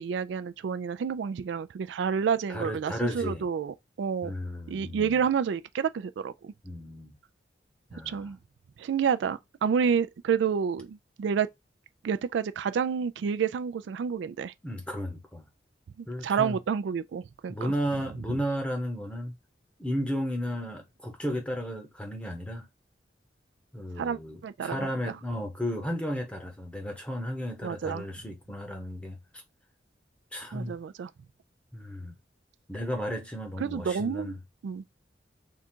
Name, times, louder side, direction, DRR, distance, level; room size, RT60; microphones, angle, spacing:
voice 1, 0.0-4.3 4.7-6.5 8.1-8.4 8.8-11.5 12.0-14.5 16.0-17.7 24.0-25.1 27.6-28.0 30.5-31.1 33.6-34.4 34.6-34.8, right 7 dB, 80° right, 0.3 m, -29 dB
voice 2, 2.5-3.5 4.2-5.2 6.6-7.2 7.9-8.3 14.6-15.4 16.1-16.6 17.5-19.3 19.8-22.7 23.7-29.4 30.3-30.8 31.7-32.1 32.7-34.4, equal, 5° left, 0.9 m, -34 dB
3.7 x 2.3 x 4.4 m
head